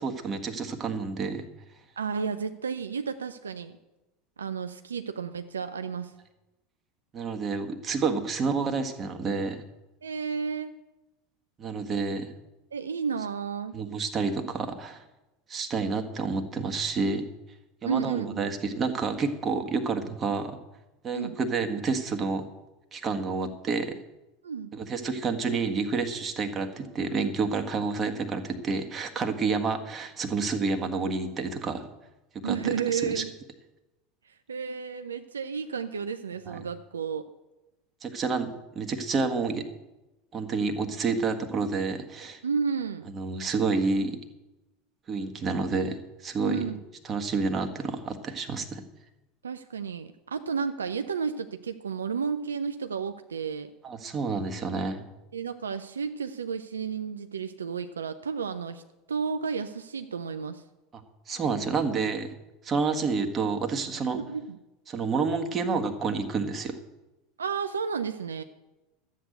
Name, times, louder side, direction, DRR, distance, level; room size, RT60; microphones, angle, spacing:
voice 1, 0.0-1.4 7.1-9.6 11.6-12.3 13.7-15.0 15.5-17.2 17.8-20.6 21.0-22.4 22.9-24.0 24.7-31.9 32.4-33.2 36.5-36.6 38.0-39.6 40.3-42.4 43.1-44.2 45.1-46.6 47.0-48.8 53.8-55.0 60.9-62.3 62.6-64.2 64.9-66.8, right 4 dB, 30° right, 5 dB, 1.6 m, -29 dB
voice 2, 2.0-3.7 4.4-6.1 10.0-10.7 12.7-13.7 17.8-18.5 21.1-21.3 24.4-24.7 32.4-33.3 34.2-37.3 42.4-43.1 46.5-46.8 49.4-53.7 55.3-58.8 59.1-60.6 64.1-64.6 67.4-68.4, right 6 dB, 80° right, 9 dB, 0.5 m, -32 dB
12.5 x 8.3 x 7.9 m, 1.0 s
figure-of-eight pair, 75°, 0 cm